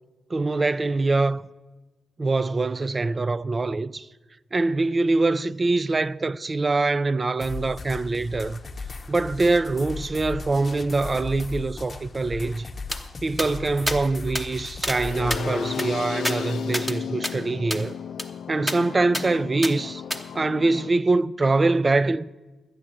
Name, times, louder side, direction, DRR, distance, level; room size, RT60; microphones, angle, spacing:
voice 1, 0.3-1.5 2.2-4.1 4.5-8.6 9.1-12.7 13.2-18.0 18.5-20.0 20.3-22.3, right 3 dB, 30° right, 0.3 m, -24 dB
sound 1, 7.4-15.4, left 4 dB, 35° left, 0.7 m, -37 dB
sound 2, 12.9-13.0 13.4-13.5 13.9-14.0 14.4-14.5 14.8-15.0 15.3-17.0 17.2-17.3 17.7-17.8 18.2-18.3 18.7-18.8 19.1-19.3 19.6-19.7 20.1-20.2, equal, 5° right, 0.9 m, -29 dB
sound 3, 14.9-20.9, left 8 dB, 80° left, 0.4 m, -34 dB
12.0 x 8.4 x 7.4 m
cardioid pair, 105°, 0 cm